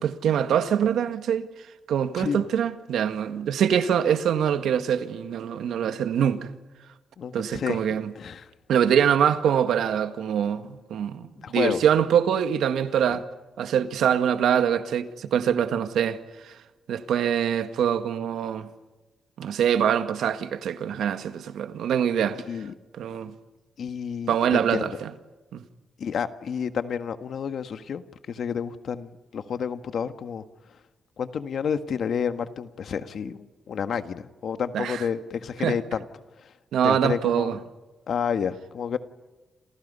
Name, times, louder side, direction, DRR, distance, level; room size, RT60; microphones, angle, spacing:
voice 1, 0.0-1.5 1.9-6.5 7.3-8.1 8.7-13.2 13.6-16.5 16.9-18.7 19.4-22.4 23.0-23.3 24.3-25.1 25.5-25.6 34.7-35.0 35.6-35.8 36.7-37.6, right 8 dB, 85° right, 1.8 m, -24 dB
voice 2, 7.2-8.5 11.4-11.8 22.5-22.7 23.8-24.9 26.0-30.4 31.2-36.0 36.4-36.5 36.8-37.5 38.1-39.0, left 7 dB, 60° left, 1.6 m, -30 dB
29.5 x 28.5 x 5.6 m
cardioid pair, 120°, 0 cm